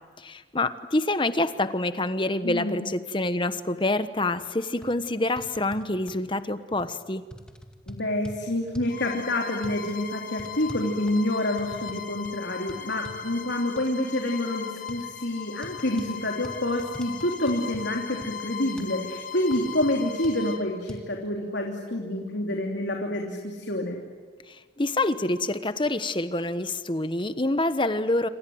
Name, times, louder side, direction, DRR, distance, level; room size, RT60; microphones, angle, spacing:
voice 1, 0.2-7.2 24.5-28.3, left 2 dB, 25° left, 11 dB, 1.2 m, -27 dB
voice 2, 2.4-2.9 7.9-24.0, left 1 dB, 75° left, 1 dB, 3.2 m, -28 dB
sound 1, 4.4-4.5 4.8-4.9 5.4-6.2 6.8-7.0 7.3-8.4 8.7-9.0 9.6-9.8 10.4-12.0 12.2-12.4 12.7-13.2 13.8-13.9 14.9-15.0 15.6-16.1 16.4-17.9 18.2-18.3 18.8-18.9 19.5-19.9 20.2-20.4 20.9-21.0, equal, 5° left, 2.1 m, -43 dB
Bowed string instrument, 8.9-20.7, left 8 dB, 45° left, 2.1 m, -39 dB
27.0 x 26.5 x 7.9 m, 1.5 s
head